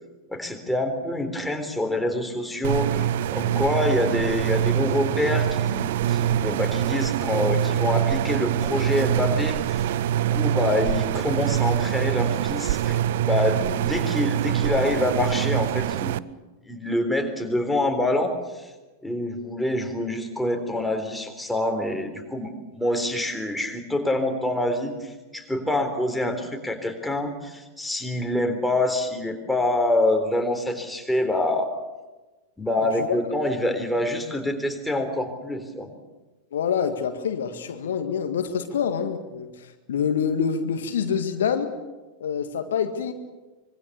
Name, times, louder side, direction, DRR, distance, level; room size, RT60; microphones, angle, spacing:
voice 1, 0.3-9.8 10.3-16.2 16.6-18.7 19.0-31.7 32.6-35.9, left 1 dB, ahead, 3 dB, 3.9 m, -26 dB
sound 1, 2.6-16.2, right 10 dB, 55° right, 0.7 m, -24 dB
voice 2, 36.5-41.7 42.2-43.1, left 7 dB, 60° left, 7 dB, 1.8 m, -26 dB
25.0 x 23.0 x 6.9 m, 1.2 s
figure-of-eight pair, 90°, 0 cm